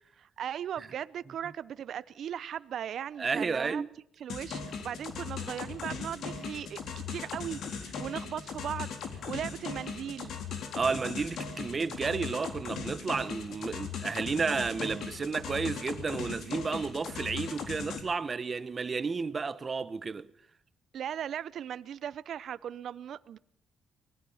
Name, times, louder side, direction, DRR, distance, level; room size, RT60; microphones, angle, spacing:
voice 1, 0.2-3.8 4.2-10.3 20.9-23.4, right 9 dB, 65° right, 0.8 m, -38 dB
voice 2, 3.2-3.9 10.7-20.3, right 4 dB, 35° right, 1.3 m, -32 dB
sound 1, 4.3-18.0, left 6 dB, 70° left, 3.9 m, -39 dB
25.0 x 20.0 x 5.7 m
cardioid pair, 90°, 0 cm